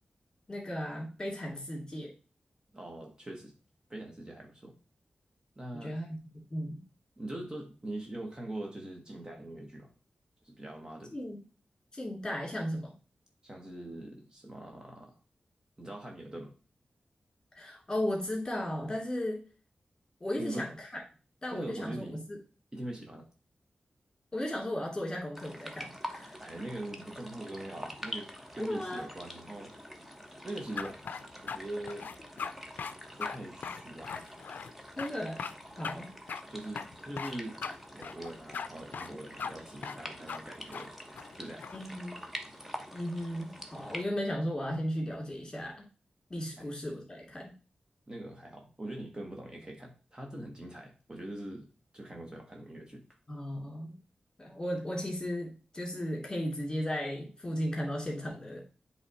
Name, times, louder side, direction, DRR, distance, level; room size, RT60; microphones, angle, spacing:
voice 1, 0.5-2.1 5.8-6.2 6.5-6.8 11.1-11.4 11.9-12.9 17.6-19.4 20.2-21.0 21.4-22.4 24.3-26.4 28.6-29.0 35.0-35.4 35.8-36.1 41.7-42.2 42.9-45.8 46.3-47.5 53.3-54.0 54.4-58.6, left 1 dB, 25° left, -1 dB, 2.5 m, -35 dB
voice 2, 2.7-3.5 3.9-4.7 5.6-5.9 7.2-9.9 10.4-11.2 13.4-15.2 15.8-16.5 20.4-20.6 21.5-22.2 22.7-23.3 26.4-29.7 30.4-32.1 33.2-34.1 36.5-37.6 37.9-41.0 41.4-41.7 46.6-46.7 48.1-51.7 51.9-53.0, right 1 dB, 25° right, 2 dB, 1.2 m, -42 dB
sound 1, 25.3-44.0, equal, 5° right, 1.0 m, -46 dB
sound 2, 30.8-31.6 31.9-32.5 32.8-32.9 33.2-33.4 33.6-34.7 35.0-35.1 35.4-35.5 35.8-35.9 36.3-36.4 36.7-37.3 37.6-37.7 38.0-38.7 38.9-39.1 39.4-39.5 39.8-40.0 40.3-40.4 40.7-40.8 41.1-41.8, left 6 dB, 85° left, 0.4 m, -38 dB
8.0 x 3.3 x 4.1 m, 0.35 s
wide cardioid pair, 85°, 3 cm